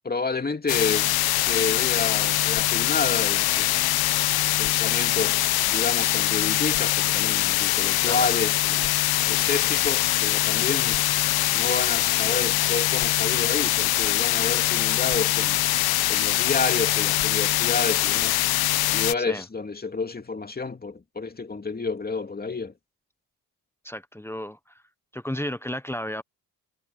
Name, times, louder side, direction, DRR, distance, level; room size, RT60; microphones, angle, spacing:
voice 1, 0.0-1.1 1.3-3.9 4.6-8.9 9.3-11.0 11.5-15.6 16.1-18.5 18.9-22.7, left 4 dB, 25° left, 2.6 m, -30 dB
sound 1, 0.7-19.1, left 15 dB, 70° left, 0.9 m, -23 dB
voice 2, 23.8-24.8 25.1-26.2, left 1 dB, 5° left, 1.1 m, -33 dB
supercardioid pair, 80°, 39 cm